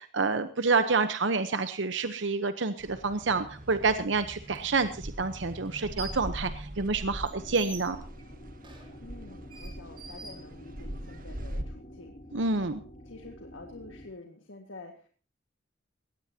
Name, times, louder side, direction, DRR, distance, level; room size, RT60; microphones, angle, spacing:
voice 1, 0.0-8.0 12.3-12.8, right 4 dB, 65° right, 10 dB, 0.9 m, -28 dB
sound 1, 2.8-11.6, right 1 dB, 45° right, 1.6 m, -42 dB
sound 2, 4.5-4.6 5.6-6.3 6.7-11.0, right 3 dB, 25° right, 3.9 m, -46 dB
sound 3, 7.2-14.1, equal, 45° left, 2.3 m, -49 dB
voice 2, 9.0-12.1 13.0-15.1, left 2 dB, 85° left, 3 dB, 1.9 m, -48 dB
21.0 x 17.0 x 2.9 m, 0.37 s
head